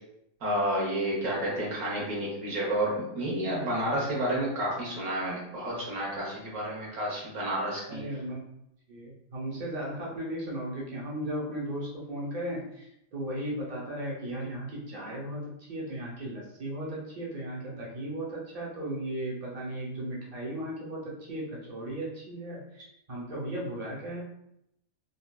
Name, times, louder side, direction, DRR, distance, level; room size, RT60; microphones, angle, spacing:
voice 1, 0.4-8.0, right 1 dB, 85° right, -4 dB, 1.5 m, -30 dB
voice 2, 7.9-8.4 8.9-24.2, right 1 dB, 35° right, -4 dB, 0.6 m, -36 dB
3.4 x 2.3 x 2.3 m, 0.80 s
omnidirectional pair, 1.5 m